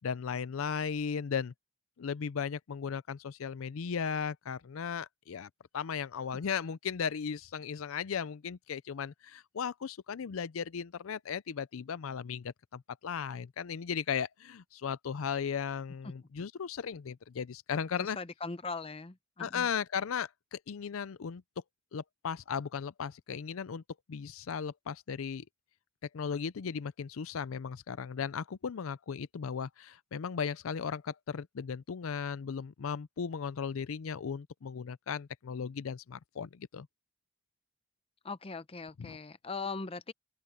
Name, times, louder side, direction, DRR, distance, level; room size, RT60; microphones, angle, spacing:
voice 1, 0.0-1.5 2.0-18.2 19.4-21.4 21.9-23.8 24.1-25.4 26.1-36.9 39.0-39.2, left 6 dB, 75° left, 0.5 m, -36 dB
voice 2, 18.2-19.7 38.2-40.1, left 4 dB, 25° left, 0.7 m, -40 dB
open air
head